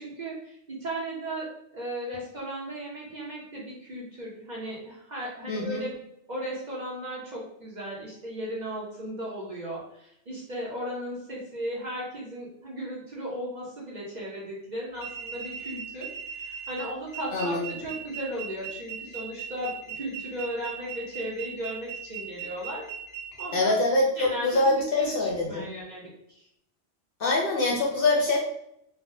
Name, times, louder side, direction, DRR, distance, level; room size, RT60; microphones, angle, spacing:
voice 1, 0.0-5.9 6.3-16.1 16.3-22.9 23.4-23.8 24.2-26.4, right 1 dB, 45° right, -4 dB, 0.7 m, -36 dB
voice 2, 5.5-5.8 17.3-17.7 23.5-25.7 27.2-28.4, left 2 dB, 60° left, -2 dB, 0.6 m, -24 dB
sound 1, 14.9-23.5, right 7 dB, 20° left, 0.7 m, -38 dB
3.3 x 2.1 x 2.6 m, 0.74 s
omnidirectional pair, 1.3 m